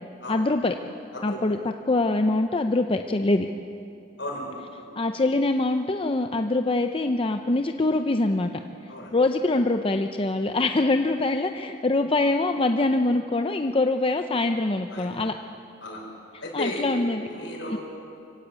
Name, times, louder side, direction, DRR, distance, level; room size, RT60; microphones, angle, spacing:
voice 1, 0.3-0.7 1.2-1.6 1.9-3.5 5.0-8.5 9.1-15.3 16.5-17.3 17.7-17.8, left 2 dB, 30° left, 6 dB, 0.6 m, -24 dB
voice 2, 4.2-4.8 8.9-9.1 14.9-15.1 15.8-16.0 16.4-16.8 17.2-17.8, left 1 dB, 65° left, -1 dB, 6.1 m, -35 dB
24.0 x 16.5 x 8.3 m, 2.6 s
head